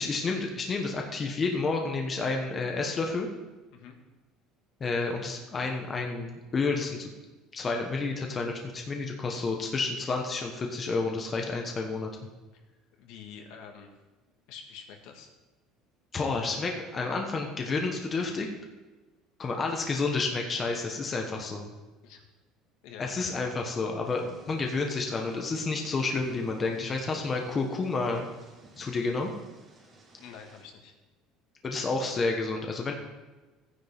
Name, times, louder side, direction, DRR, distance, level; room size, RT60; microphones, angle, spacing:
voice 1, 0.0-3.3 4.8-7.1 7.5-12.1 16.1-18.5 19.4-21.7 23.0-28.3 28.8-29.3 31.6-32.9, left 3 dB, 25° left, 2 dB, 1.2 m, -30 dB
voice 2, 13.0-13.9 14.5-15.3 22.0-22.3 22.8-23.1 30.2-30.9, left 6 dB, 70° left, 3 dB, 1.8 m, -47 dB
Thunder / Rain, 24.0-30.6, right 1 dB, 30° right, 3.7 m, -53 dB
15.0 x 9.6 x 3.6 m, 1.2 s
cardioid pair, 145°, 0 cm